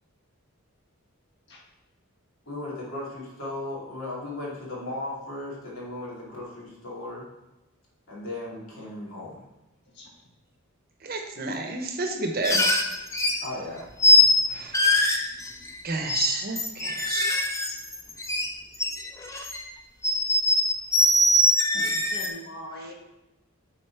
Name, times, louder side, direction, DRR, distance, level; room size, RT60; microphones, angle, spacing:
voice 1, 2.5-7.2 8.1-9.4 13.4-13.9, left 2 dB, 75° left, -5 dB, 2.7 m, -36 dB
voice 2, 11.0-12.6 14.5-14.8 15.8-17.3 21.7-22.0 22.8-22.9, right 3 dB, 45° right, 4 dB, 0.9 m, -31 dB
sound 1, 12.4-13.5 14.0-14.4 14.7-15.8 16.1-16.3 16.6-18.5 18.7-19.6 20.0-22.3, left 2 dB, 15° left, 0.6 m, -22 dB
voice 3, 22.1-22.9, equal, 55° left, -1 dB, 1.6 m, -40 dB
8.0 x 4.2 x 4.5 m, 0.97 s
head